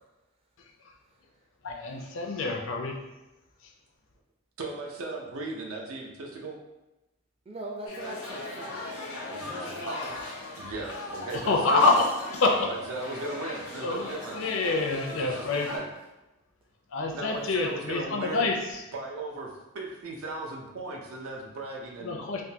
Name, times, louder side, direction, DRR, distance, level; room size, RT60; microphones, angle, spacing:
voice 1, 1.6-2.9 11.5-12.1 12.4-12.7 13.8-14.0 14.3-15.7 16.9-18.8 22.0-22.4, left 3 dB, 65° left, 2 dB, 0.5 m, -26 dB
voice 2, 4.6-6.6 9.3-9.5 9.9-10.0 10.6-12.0 12.5-14.5 15.1-15.9 17.1-18.5 18.9-22.4, right 2 dB, 75° right, 0 dB, 0.6 m, -37 dB
voice 3, 7.5-9.1 9.4-10.3 17.3-17.4, right 1 dB, 25° right, -1 dB, 0.5 m, -41 dB
sound 1, 7.9-15.8, left 2 dB, 90° left, 0.8 m, -39 dB
3.5 x 2.2 x 2.8 m, 1.0 s
head